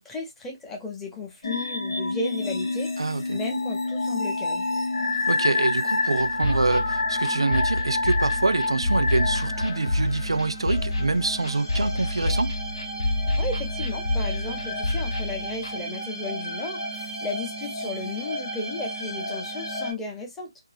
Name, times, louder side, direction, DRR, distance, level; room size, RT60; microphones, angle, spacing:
voice 1, 0.0-4.7 13.4-20.5, left 3 dB, 5° left, 0.7 m, -34 dB
sound 1, 1.4-19.9, left 2 dB, 60° left, 0.9 m, -30 dB
voice 2, 3.0-3.4 5.3-12.6, right 3 dB, 80° right, 0.3 m, -26 dB
sound 2, 6.2-15.7, left 2 dB, 85° left, 1.4 m, -28 dB
2.6 x 2.4 x 2.4 m
figure-of-eight pair, 155°, 3 cm